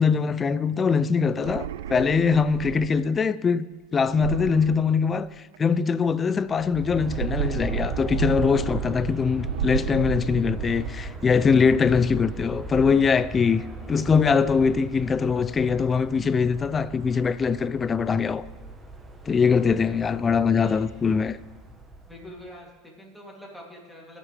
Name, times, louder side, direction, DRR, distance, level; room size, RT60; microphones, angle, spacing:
voice 1, 0.0-3.7 3.9-5.3 5.6-18.4 19.3-21.4, left 5 dB, 25° left, 0.4 m, -22 dB
sound 1, 1.3-3.2 4.1-5.6 6.9-9.1 9.4-11.1, right 11 dB, 90° right, 0.4 m, -33 dB
Aircraft, 6.4-22.5, right 2 dB, 15° right, 1.1 m, -38 dB
voice 2, 19.4-20.0 20.5-20.9 22.1-24.2, left 1 dB, ahead, 2.8 m, -45 dB
22.0 x 7.5 x 3.4 m
supercardioid pair, 120°, 0 cm